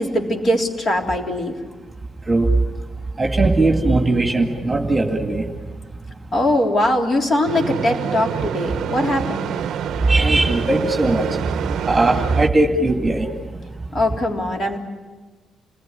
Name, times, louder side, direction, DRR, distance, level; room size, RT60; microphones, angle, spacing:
voice 1, 0.0-1.5 6.3-9.5 13.9-14.8, left 1 dB, 35° left, 2 dB, 3.6 m, -21 dB
voice 2, 3.2-5.4 10.1-11.3 11.6-13.3, right 2 dB, 15° right, 4 dB, 2.1 m, -18 dB
sound 1, 7.4-12.5, right 9 dB, 70° right, 0.8 m, -27 dB
29.0 x 20.0 x 9.9 m, 1.3 s
cardioid pair, 170°, 0 cm